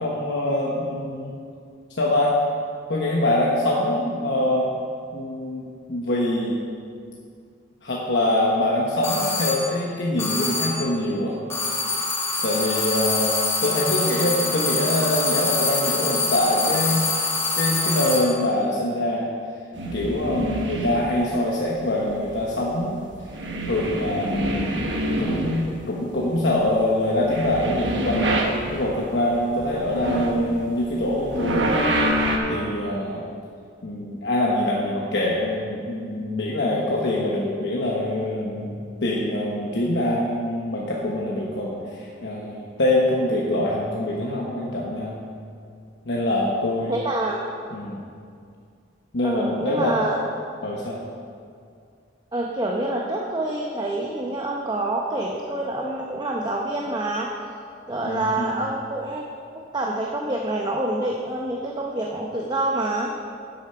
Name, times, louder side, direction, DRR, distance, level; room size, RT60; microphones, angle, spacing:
voice 1, 0.0-1.3 2.0-2.4 2.9-4.7 5.1-6.6 7.8-11.4 12.4-13.3 13.6-17.1 17.6-19.3 19.9-23.1 23.7-24.8 25.2-28.3 28.7-31.9 32.4-33.2 33.8-45.2 46.0-47.0 47.7-48.0 49.1-50.0 50.6-51.0 58.0-58.5, left 1 dB, 70° left, -3 dB, 1.1 m, -24 dB
sound 1, 9.0-9.7 10.2-10.9 11.5-18.4, left 3 dB, 15° left, 1.3 m, -25 dB
sound 2, 19.7-21.3 21.9-22.8 23.1-26.0 26.2-29.1 29.4-32.4, right 1 dB, 80° right, 1.1 m, -26 dB
voice 2, 46.9-47.4 49.2-50.2 52.3-57.3 57.9-59.2 59.7-63.1, right 2 dB, 25° right, -1 dB, 0.7 m, -27 dB
8.6 x 8.3 x 5.7 m, 2.3 s
head